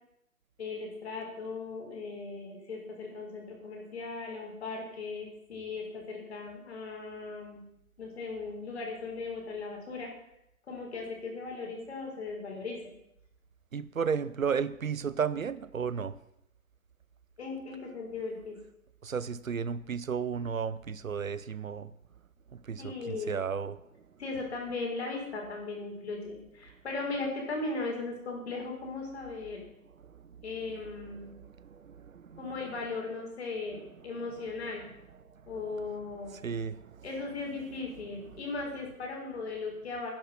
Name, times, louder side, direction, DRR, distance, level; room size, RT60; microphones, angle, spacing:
voice 1, 0.6-7.6 8.0-10.1 10.7-12.8 17.4-18.6 22.8-23.4 24.2-29.7 30.4-31.3 32.4-34.8 35.5-36.3 37.0-40.1, left 3 dB, 45° left, 6.0 m, -38 dB
voice 2, 13.7-16.2 19.0-21.9 22.5-23.8 30.0-30.4 31.2-32.5 36.3-37.0, right 6 dB, 65° right, 0.9 m, -34 dB
20.0 x 10.5 x 5.9 m
figure-of-eight pair, 140°, 43 cm